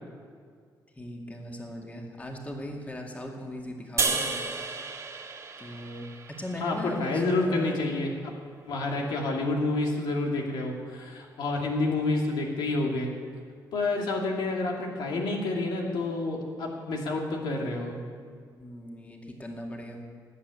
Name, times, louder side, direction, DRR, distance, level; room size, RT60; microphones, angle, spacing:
voice 1, 1.0-4.4 5.6-6.1 6.4-7.8 8.9-9.4 18.5-20.0, left 1 dB, 20° left, 1 dB, 2.3 m, -39 dB
sound 1, 4.0-7.3, right 4 dB, 40° right, 1.7 m, -32 dB
voice 2, 6.6-8.3 8.7-13.1 13.7-18.0, left 2 dB, 90° left, 0 dB, 2.6 m, -29 dB
19.0 x 8.2 x 8.3 m, 2.1 s
cardioid pair, 110°, 7 cm